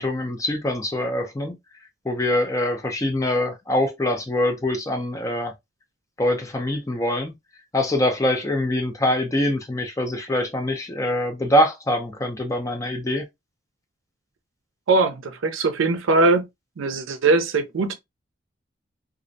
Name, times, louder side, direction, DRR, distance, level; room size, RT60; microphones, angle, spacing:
voice 1, 0.0-1.6 2.0-5.5 6.2-7.4 7.7-13.3, left 1 dB, 15° left, 0.4 m, -24 dB
voice 2, 14.9-16.5 16.8-17.9, right 3 dB, 85° right, 0.5 m, -20 dB
2.4 x 2.0 x 2.5 m
head